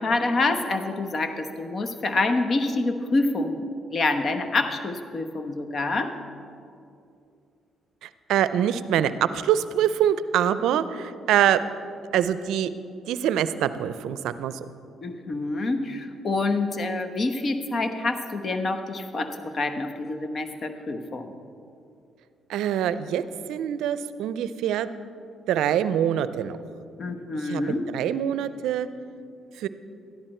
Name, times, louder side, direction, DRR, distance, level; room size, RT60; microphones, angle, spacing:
voice 1, 0.0-3.7 3.9-6.1 15.0-21.4 27.0-27.8, left 2 dB, 45° left, 7 dB, 1.0 m, -27 dB
voice 2, 8.0-11.6 12.1-12.7 13.1-14.7 22.5-23.2 23.5-24.9 25.5-26.6 27.4-27.6 27.9-28.9 29.6-29.7, right 10 dB, 80° right, 14 dB, 0.5 m, -24 dB
13.0 x 11.0 x 4.4 m, 2.5 s
cardioid pair, 75°, 0 cm